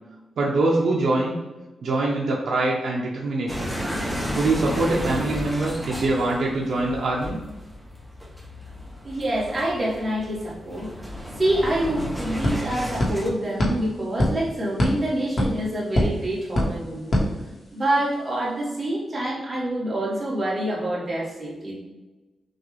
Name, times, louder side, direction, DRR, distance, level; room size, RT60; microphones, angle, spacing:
voice 1, 0.4-1.4 1.8-3.8 4.3-7.4, right 2 dB, 70° right, -3 dB, 0.6 m, -23 dB
sound 1, 3.5-13.3, equal, ahead, 0.6 m, -33 dB
voice 2, 9.0-10.9 11.4-17.1 17.7-21.8, right 1 dB, 25° right, -6 dB, 1.4 m, -26 dB
sound 2, 11.6-18.1, left 1 dB, 40° left, 1.1 m, -27 dB
6.1 x 2.4 x 3.2 m, 1.1 s
wide cardioid pair, 180°, 0 cm